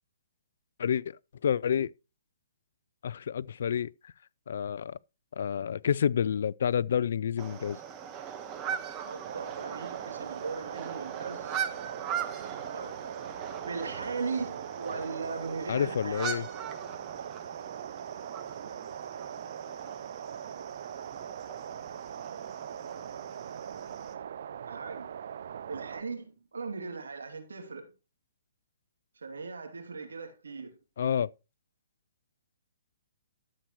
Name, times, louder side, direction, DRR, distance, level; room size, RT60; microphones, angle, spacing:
voice 1, 0.8-1.2 1.4-1.9 3.0-4.1 4.5-5.0 5.3-7.8 15.7-16.5 31.0-31.3, left 8 dB, 65° left, 0.4 m, -29 dB
sound 1, 7.4-24.1, right 8 dB, 25° right, 1.3 m, -41 dB
voice 2, 9.1-11.6 12.7-13.0 13.5-16.4 24.6-25.1 25.7-27.9 29.2-30.7, right 4 dB, 85° right, 2.7 m, -38 dB
sound 2, 9.2-26.0, right 8 dB, 60° right, 0.4 m, -41 dB
12.5 x 7.6 x 3.1 m
hypercardioid pair, 145°, 0 cm